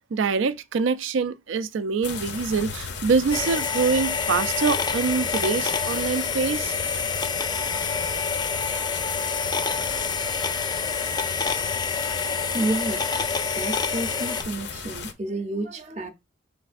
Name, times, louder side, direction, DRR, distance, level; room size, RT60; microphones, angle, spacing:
voice 1, 0.1-6.7, right 5 dB, 85° right, 0.4 m, -25 dB
sound 1, 2.0-15.1, left 5 dB, 65° left, 0.6 m, -36 dB
sound 2, 3.3-14.4, left 5 dB, 20° left, 0.3 m, -27 dB
voice 2, 12.2-13.1 13.5-16.1, right 2 dB, 35° right, 0.6 m, -30 dB
5.9 x 3.2 x 2.5 m
head